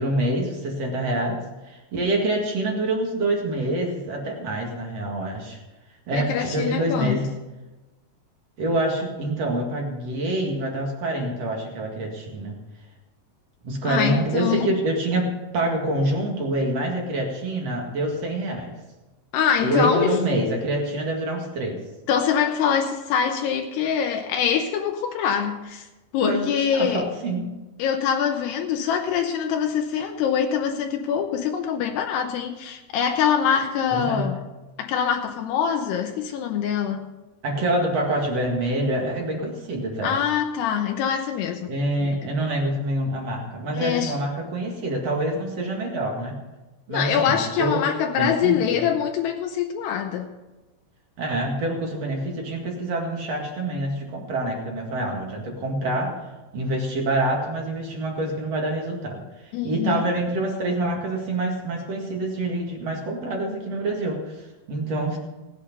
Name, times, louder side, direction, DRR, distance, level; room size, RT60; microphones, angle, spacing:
voice 1, 0.0-5.6 6.1-7.3 8.6-12.6 13.6-18.7 19.6-21.8 26.2-27.5 33.9-34.3 37.4-40.2 41.7-46.4 46.9-47.8 48.2-48.9 51.2-56.2 56.5-65.2, right 1 dB, 45° right, 1 dB, 2.4 m, -26 dB
voice 2, 6.1-7.2 13.9-14.7 19.3-20.1 22.1-25.9 26.1-27.0 27.8-34.4 34.8-37.1 40.0-41.7 42.0-42.1 43.7-44.2 46.9-50.3 59.5-60.1, left 8 dB, 75° left, 4 dB, 2.7 m, -24 dB
18.0 x 8.6 x 5.3 m, 1.1 s
omnidirectional pair, 5.0 m